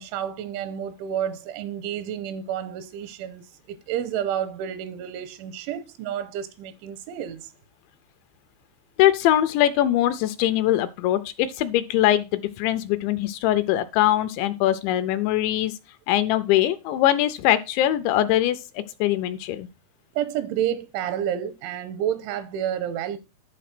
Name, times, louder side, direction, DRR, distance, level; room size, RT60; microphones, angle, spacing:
voice 1, 0.0-7.5 20.1-23.2, right 10 dB, 85° right, 3.0 m, -30 dB
voice 2, 9.0-15.7 16.1-18.6 19.0-19.7, left 13 dB, 80° left, 2.7 m, -22 dB
11.0 x 4.6 x 5.9 m
omnidirectional pair, 5.6 m